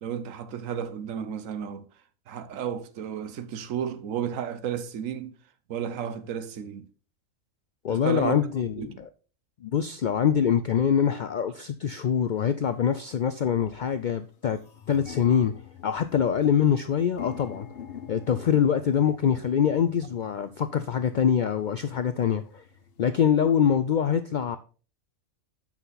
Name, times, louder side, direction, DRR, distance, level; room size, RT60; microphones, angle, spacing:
voice 1, 0.0-1.9 2.3-5.4 5.7-6.9 7.9-8.4 8.8-9.0, right 8 dB, 85° right, 1.1 m, -32 dB
voice 2, 7.8-9.1 9.6-14.6 14.9-15.5 15.8-17.7 18.1-22.6 23.0-24.6, left 8 dB, 75° left, 0.4 m, -24 dB
sound 1, 12.1-12.2 13.0-13.2 13.6-13.7 14.0-23.7, left 7 dB, 50° left, 1.1 m, -46 dB
8.0 x 5.9 x 3.9 m
omnidirectional pair, 1.3 m